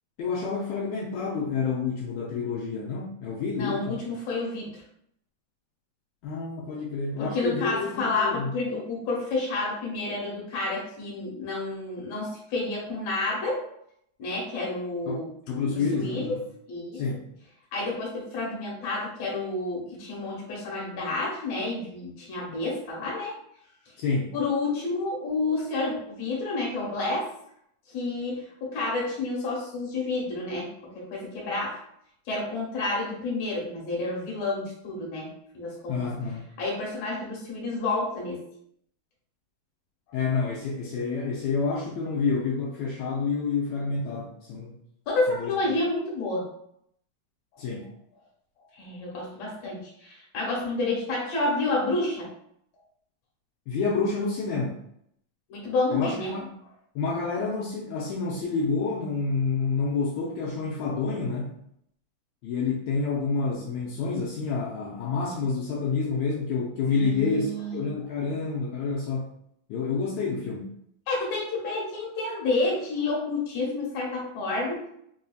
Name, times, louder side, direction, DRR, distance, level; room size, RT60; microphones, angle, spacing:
voice 1, 0.2-4.0 6.2-8.6 15.1-15.2 15.5-16.4 16.9-17.3 24.0-24.3 35.9-36.5 40.1-44.7 45.3-45.5 47.6-47.9 53.7-54.8 55.9-56.5 57.0-61.6 62.4-69.3 69.7-70.7, left 4 dB, 80° left, -3 dB, 1.8 m, -28 dB
voice 2, 3.6-4.7 7.2-13.6 14.2-15.3 15.7-16.4 16.7-17.0 17.7-23.3 24.3-27.3 27.9-31.8 32.3-36.0 36.6-38.5 45.1-46.5 48.7-52.3 55.5-56.3 66.9-67.8 71.1-74.9, left 2 dB, 60° left, -3 dB, 2.1 m, -30 dB
4.9 x 2.6 x 2.3 m, 0.72 s
omnidirectional pair, 3.5 m